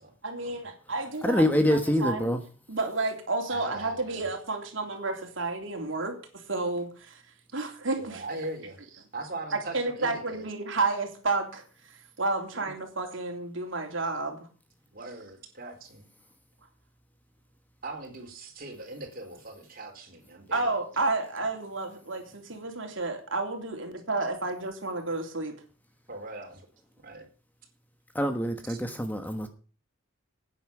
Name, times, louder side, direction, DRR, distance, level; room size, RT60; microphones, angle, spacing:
voice 1, 0.2-2.3 2.7-7.2 7.5-8.4 9.5-11.6 12.2-14.4 20.5-25.5, right 3 dB, 65° right, 3 dB, 3.4 m, -31 dB
voice 2, 1.2-2.4 28.1-29.5, left 1 dB, 10° left, 7 dB, 1.2 m, -25 dB
voice 3, 3.5-4.2 8.0-8.8 9.1-10.4 12.5-12.7 14.9-16.1 17.8-20.7 26.1-26.7 27.0-27.3 28.7-28.8, right 2 dB, 45° right, 2 dB, 4.4 m, -40 dB
11.5 x 9.8 x 7.1 m, 0.39 s
head